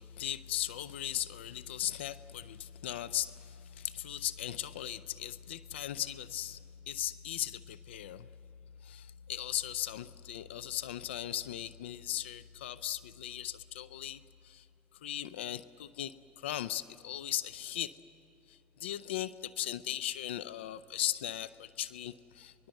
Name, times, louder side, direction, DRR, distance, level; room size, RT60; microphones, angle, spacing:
voice 1, 0.0-6.6 6.9-8.3 8.8-14.6 15.0-17.9 18.5-22.7, left 12 dB, 90° left, 16 dB, 0.5 m, -38 dB
23.0 x 21.0 x 7.8 m, 2.7 s
hypercardioid pair, 65°, 6 cm